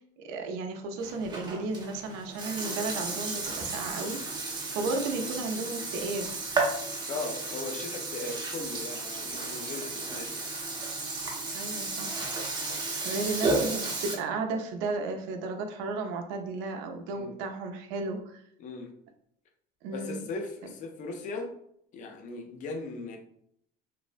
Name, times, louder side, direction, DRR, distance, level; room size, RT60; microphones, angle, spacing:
voice 1, 0.2-6.3 11.5-12.2 13.0-18.4 19.8-20.3, right 3 dB, 70° right, 4 dB, 0.5 m, -34 dB
Burping eructation, 1.0-14.1, right 3 dB, 20° right, 0.6 m, -33 dB
voice 2, 7.1-10.5 17.1-17.4 18.6-18.9 19.9-21.5 21.9-23.2, left 3 dB, 40° left, 3 dB, 0.5 m, -38 dB
3.2 x 2.0 x 2.5 m, 0.70 s
cardioid pair, 130°, 21 cm